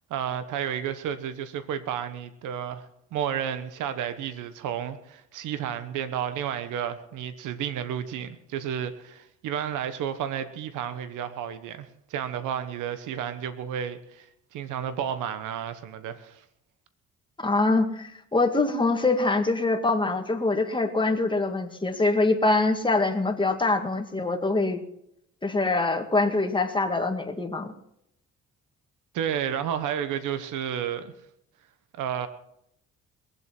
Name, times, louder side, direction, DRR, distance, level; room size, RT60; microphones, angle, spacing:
voice 1, 0.1-2.8 3.1-16.4 29.1-31.1 32.0-32.3, right 9 dB, 90° right, 11 dB, 1.2 m, -31 dB
voice 2, 17.4-24.8 25.4-27.7, left 3 dB, 15° left, 4 dB, 2.0 m, -24 dB
22.0 x 8.0 x 5.9 m, 0.77 s
cardioid pair, 90°, 30 cm